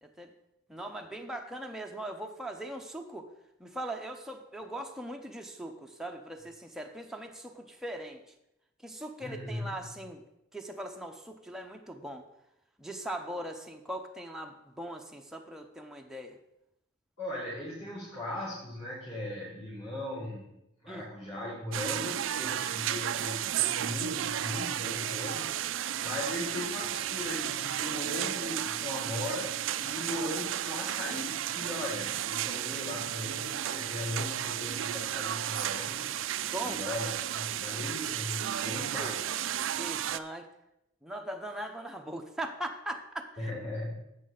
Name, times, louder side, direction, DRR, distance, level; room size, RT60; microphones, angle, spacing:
voice 1, 0.0-0.3 0.7-3.3 3.6-8.2 8.8-10.2 10.5-12.2 12.8-16.4 20.9-21.1 25.9-26.2 36.5-36.8 38.9-39.1 39.6-40.5 41.0-43.5, right 1 dB, 5° right, 2 dB, 0.7 m, -40 dB
voice 2, 9.2-9.7 17.2-20.5 20.8-36.1 36.6-39.3 43.4-44.0, left 1 dB, 35° left, -11 dB, 3.1 m, -38 dB
sound 1, 21.7-40.2, right 11 dB, 65° right, 0.4 m, -33 dB
10.5 x 7.5 x 3.9 m, 0.85 s
head